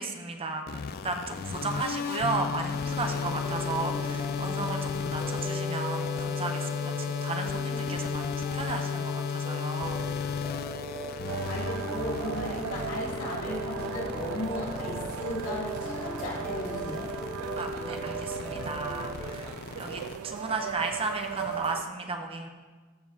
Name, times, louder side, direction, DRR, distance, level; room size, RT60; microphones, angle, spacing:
voice 1, 0.0-10.0 17.6-22.5, right 3 dB, 25° right, 4 dB, 0.7 m, -34 dB
sound 1, 0.7-20.2, left 6 dB, 50° left, 0.3 m, -34 dB
sound 2, 3.0-19.5, equal, ahead, 1.0 m, -39 dB
sound 3, 11.3-21.8, right 9 dB, 90° right, 0.3 m, -38 dB
voice 2, 11.5-17.1, left 1 dB, 70° left, -5 dB, 2.7 m, -36 dB
14.5 x 6.9 x 2.8 m, 1.4 s
head